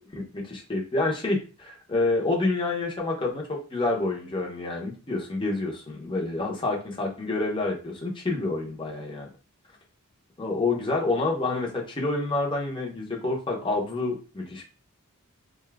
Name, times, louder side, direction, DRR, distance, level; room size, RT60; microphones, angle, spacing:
voice 1, 0.0-3.4 3.7-9.3 10.4-14.6, left 2 dB, 20° left, -1 dB, 0.8 m, -28 dB
2.7 x 2.3 x 3.4 m, 0.35 s
head